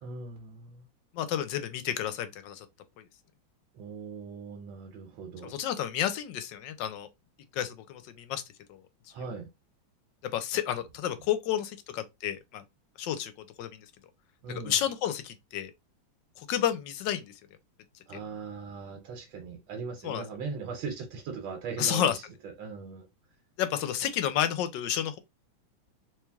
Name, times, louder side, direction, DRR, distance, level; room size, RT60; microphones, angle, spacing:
voice 1, 0.0-0.8 3.7-5.5 9.1-9.5 14.4-14.8 18.1-23.1, right 5 dB, 85° right, 1.6 m, -39 dB
voice 2, 1.1-2.7 5.4-7.1 7.5-8.4 8.7-8.8 10.3-12.6 13.0-13.3 13.6-13.9 14.5-15.7 16.4-17.3 20.0-20.2 21.8-22.1 23.6-25.2, left 10 dB, 75° left, 1.2 m, -31 dB
3.3 x 3.0 x 3.4 m
omnidirectional pair, 2.2 m